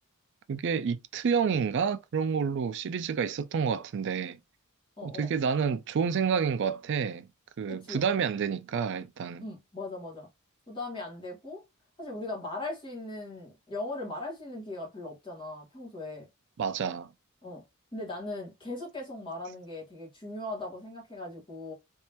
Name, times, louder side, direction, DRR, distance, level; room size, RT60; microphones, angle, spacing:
voice 1, 0.5-4.4 5.0-7.2 7.6-9.4 16.6-17.1, right 6 dB, 55° right, 0.4 m, -29 dB
voice 2, 5.0-5.3 7.7-8.1 9.4-10.3 10.7-11.6 12.0-16.3 17.4-17.6 17.9-21.7, left 2 dB, 20° left, 1.7 m, -39 dB
3.5 x 3.1 x 2.9 m
head